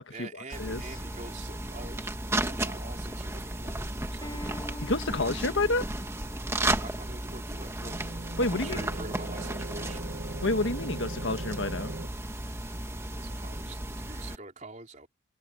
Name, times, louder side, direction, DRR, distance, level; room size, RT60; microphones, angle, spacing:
voice 1, 0.1-4.5 5.2-5.3 6.6-8.1 8.5-10.2 13.0-15.1, right 3 dB, 35° right, 4.3 m, -46 dB
sound 1, 0.5-14.4, right 1 dB, 15° right, 1.4 m, -34 dB
Acoustic guitar, 4.2-9.4, left 1 dB, 20° left, 3.6 m, -47 dB
voice 2, 4.8-5.9 8.4-8.8 10.4-11.9, left 2 dB, 65° left, 1.7 m, -29 dB
sound 2, 7.7-12.1, right 2 dB, 55° right, 1.1 m, -40 dB
head